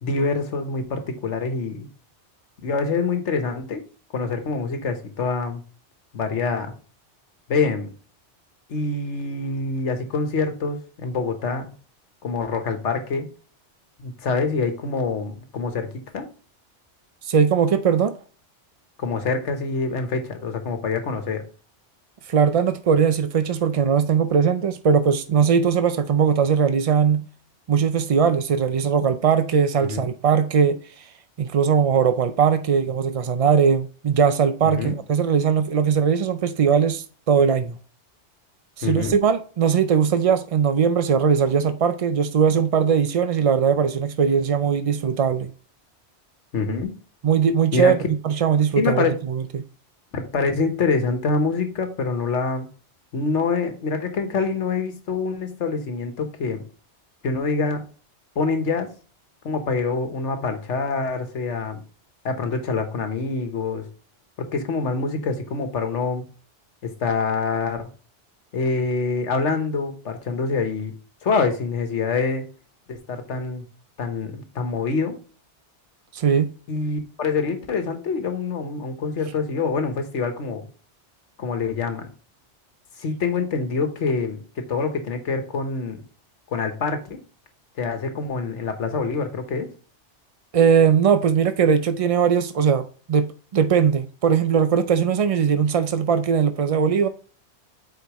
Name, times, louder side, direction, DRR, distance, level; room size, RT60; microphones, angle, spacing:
voice 1, 0.0-1.9 2.6-3.8 4.1-5.6 6.1-6.7 7.5-7.9 8.7-11.7 12.2-13.3 14.0-15.9 16.1-16.3 19.0-21.4 29.8-30.1 34.6-34.9 38.8-39.2 46.5-46.9 47.7-47.9 48.8-49.1 50.1-52.7 53.1-56.6 57.2-57.9 58.3-58.9 59.4-61.8 62.2-63.8 64.4-66.2 66.8-67.9 68.5-70.9 71.2-72.4 72.9-73.6 74.0-75.2 76.7-80.6 81.4-82.1 83.0-86.0 86.5-87.2 87.8-89.7, left 4 dB, 80° left, 1.4 m, -25 dB
voice 2, 17.2-18.1 22.3-27.2 27.7-31.0 31.4-37.8 38.8-45.5 47.2-49.6 76.1-76.5 90.5-97.1, right 7 dB, 65° right, 0.3 m, -20 dB
8.1 x 4.6 x 3.0 m
omnidirectional pair, 1.2 m